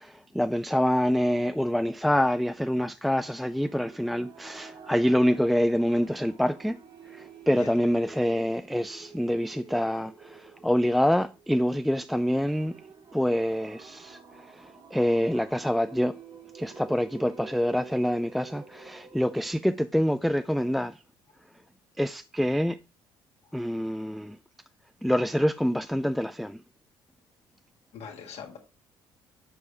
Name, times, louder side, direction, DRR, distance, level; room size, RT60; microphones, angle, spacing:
voice 1, 0.0-6.8 7.1-12.8 13.1-16.2 16.5-21.0 22.0-22.8 23.5-24.4 25.0-26.6, equal, ahead, 0.3 m, -26 dB
sound 1, 3.5-19.5, right 6 dB, 45° right, 1.7 m, -49 dB
voice 2, 7.5-7.8 23.4-23.5 27.9-28.6, left 6 dB, 60° left, 1.8 m, -42 dB
7.4 x 4.6 x 3.3 m
hypercardioid pair, 60°, 12 cm